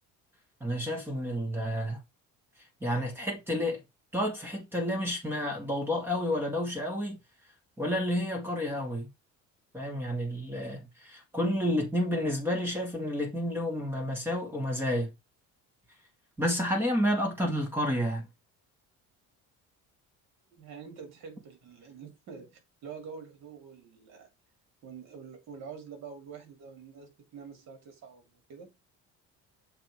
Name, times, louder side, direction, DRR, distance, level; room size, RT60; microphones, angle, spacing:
voice 1, 0.6-2.0 2.8-3.8 4.1-7.2 7.8-9.1 9.7-15.1 16.4-18.3, equal, 5° right, 2.1 m, -30 dB
voice 2, 20.5-24.3 24.8-28.7, right 6 dB, 55° right, 2.5 m, -46 dB
6.8 x 3.8 x 4.7 m
cardioid pair, 175°, 32 cm